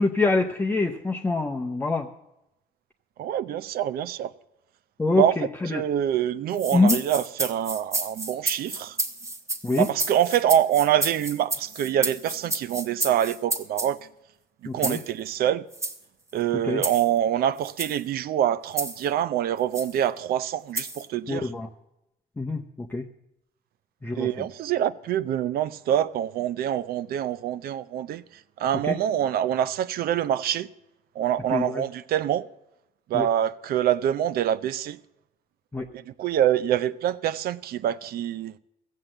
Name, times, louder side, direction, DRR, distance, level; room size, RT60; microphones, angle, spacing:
voice 1, 0.0-2.1 5.0-5.8 6.7-7.0 9.6-9.9 14.7-15.0 16.6-16.8 21.3-21.7 22.4-23.0 24.0-24.3 28.9-29.0 31.5-31.8 33.1-33.3 35.7-35.9, left 3 dB, 10° left, 0.7 m, -25 dB
voice 2, 3.2-4.3 5.1-5.4 5.7-9.0 9.8-14.0 14.7-15.7 16.3-21.5 24.2-28.2 28.6-30.7 31.2-32.5 33.1-35.0 35.9-38.5, right 10 dB, 65° right, 0.6 m, -25 dB
sound 1, 6.5-13.9 14.8-15.1 15.7-16.0 16.8-17.1 17.6-18.0 18.8-19.1 19.7-19.9 20.7-21.0, right 2 dB, 15° right, 1.1 m, -31 dB
15.5 x 7.4 x 7.7 m
cardioid pair, 110°, 17 cm